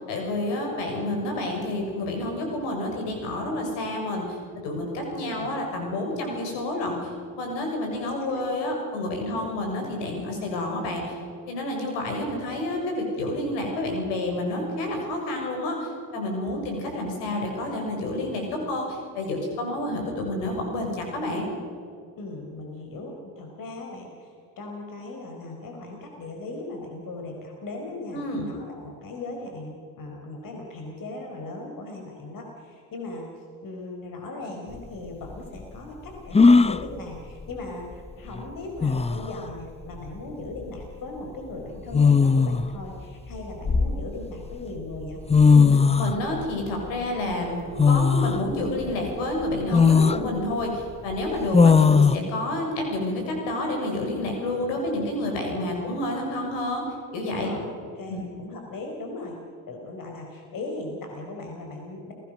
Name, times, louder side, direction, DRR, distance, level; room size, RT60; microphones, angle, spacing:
voice 1, 0.1-4.3 4.6-7.1 7.4-11.2 11.5-15.8 16.1-21.5 28.1-28.5 45.5-56.8 57.1-57.5 58.1-58.2, left 1 dB, 80° left, 2 dB, 6.9 m, -29 dB
voice 2, 22.2-45.2 55.8-55.9 57.3-57.7 57.9-59.4 59.7-62.1, left 2 dB, 50° left, 2 dB, 4.7 m, -38 dB
sound 1, 34.7-34.8 36.3-36.8 38.4-38.5 38.8-39.3 40.6-40.8 41.9-42.7 43.3-44.4 45.0-45.1 45.3-46.2 47.8-48.4 48.9-49.0 49.7-50.2 51.5-52.2, left 5 dB, 15° left, 0.8 m, -17 dB
29.5 x 19.0 x 6.4 m, 2.2 s
supercardioid pair, 80°, 41 cm